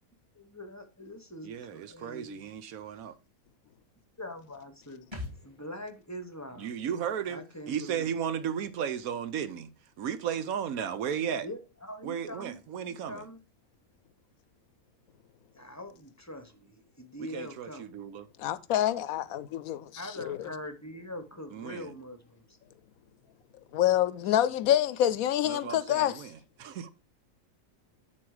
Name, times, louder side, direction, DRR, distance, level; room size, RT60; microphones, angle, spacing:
voice 1, 0.3-2.5 4.2-5.1 5.4-6.7 7.3-8.1 11.4-12.6 12.8-13.4 15.5-17.9 19.9-22.6 24.2-24.4, equal, 15° left, 0.8 m, -43 dB
voice 2, 1.4-3.1 6.6-9.7 10.0-11.5 12.0-13.2 17.2-18.3 21.5-21.9 25.4-26.9, right 8 dB, 80° right, 1.2 m, -35 dB
sound 1, 5.1-8.6 8.9-9.0, left 3 dB, 20° right, 2.0 m, -47 dB
voice 3, 18.4-19.9 20.2-20.4 23.7-26.2, left 12 dB, 80° left, 1.0 m, -26 dB
9.8 x 4.3 x 4.8 m
omnidirectional pair, 1.5 m